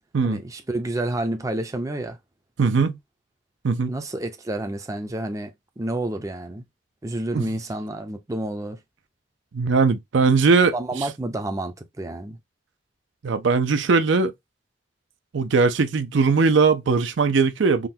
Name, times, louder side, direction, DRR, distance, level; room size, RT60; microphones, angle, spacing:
voice 1, 0.2-2.2 3.9-6.6 7.0-8.8 10.7-12.4, right 1 dB, 15° right, 0.5 m, -29 dB
voice 2, 2.6-2.9 3.6-3.9 7.3-7.5 9.5-10.7 13.2-14.3 15.3-17.9, right 4 dB, 75° right, 0.5 m, -19 dB
3.6 x 2.2 x 2.6 m
head